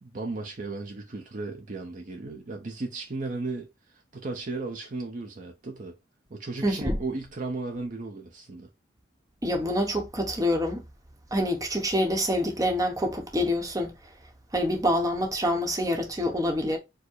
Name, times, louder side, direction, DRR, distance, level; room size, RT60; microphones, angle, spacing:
voice 1, 0.0-5.9 6.3-8.7, right 3 dB, 45° right, 0.7 m, -35 dB
voice 2, 6.6-7.0 9.4-10.8 11.3-13.9 14.5-16.8, equal, 20° right, 0.9 m, -26 dB
4.6 x 2.1 x 4.5 m
head